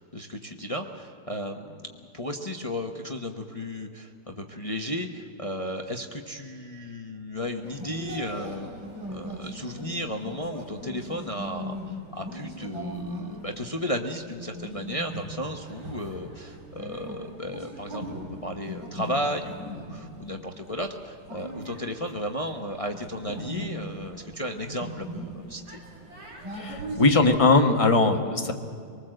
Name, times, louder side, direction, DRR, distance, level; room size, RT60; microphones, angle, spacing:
voice 1, 0.0-8.7 9.1-25.8, left 1 dB, 35° left, 4 dB, 0.5 m, -34 dB
sound 1, 7.6-27.3, right 1 dB, 60° right, 5.5 m, -39 dB
voice 2, 26.6-28.5, left 3 dB, 20° left, 3 dB, 1.2 m, -20 dB
24.5 x 19.5 x 7.8 m, 2.4 s
omnidirectional pair, 2.4 m